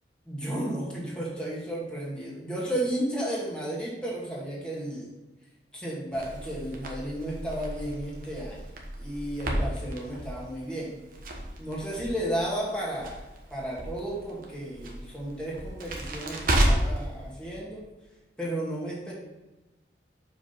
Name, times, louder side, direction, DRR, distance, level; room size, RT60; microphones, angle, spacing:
voice 1, 0.3-5.1 5.7-11.0 11.6-13.2 13.5-17.9 18.4-19.1, right 1 dB, 5° left, -6 dB, 2.0 m, -33 dB
Crackle, 6.1-17.0, right 1 dB, 55° right, 1.3 m, -32 dB
6.0 x 5.0 x 5.6 m, 1.1 s
head